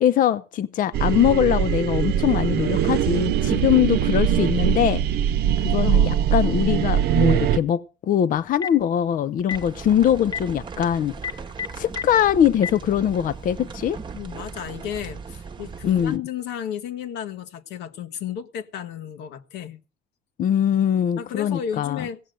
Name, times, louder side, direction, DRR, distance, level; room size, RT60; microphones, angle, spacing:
voice 1, 0.0-5.0 5.6-11.1 11.7-14.0 15.9-16.2 20.4-22.0, left 10 dB, 55° left, 0.6 m, -22 dB
sound 1, 0.9-7.6, right 10 dB, 70° right, 0.8 m, -21 dB
voice 2, 5.8-6.3 14.1-19.8 21.2-22.2, left 9 dB, 85° left, 1.4 m, -33 dB
Telephone, 8.4-8.8 9.4-9.6 10.2-10.4 11.1-12.0 12.5-12.7, left 7 dB, 20° left, 0.9 m, -29 dB
sound 2, 9.5-16.2, right 5 dB, 30° right, 1.0 m, -38 dB
17.0 x 6.5 x 7.7 m
cardioid pair, 110°, 17 cm